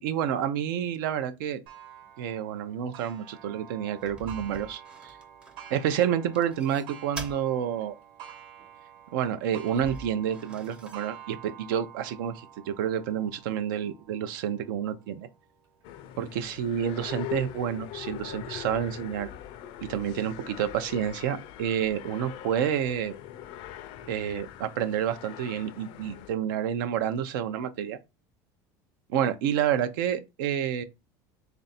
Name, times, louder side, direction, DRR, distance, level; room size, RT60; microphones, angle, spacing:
voice 1, 0.0-1.6 2.2-5.2 5.7-8.0 9.1-15.3 16.2-19.3 19.8-23.2 24.1-28.0 29.1-30.8, right 9 dB, 85° right, 0.6 m, -29 dB
Clock, 1.7-17.0 17.6-17.7 18.2-18.3 19.3-19.4, right 9 dB, 50° right, 1.2 m, -49 dB
sound 1, 4.0-5.9 6.3-7.4 7.8-7.9 9.5-11.1, right 1 dB, 10° right, 0.5 m, -44 dB
sound 2, 15.8-26.3, left 12 dB, 55° left, 0.4 m, -42 dB
3.4 x 2.6 x 4.1 m
cardioid pair, 145°, 11 cm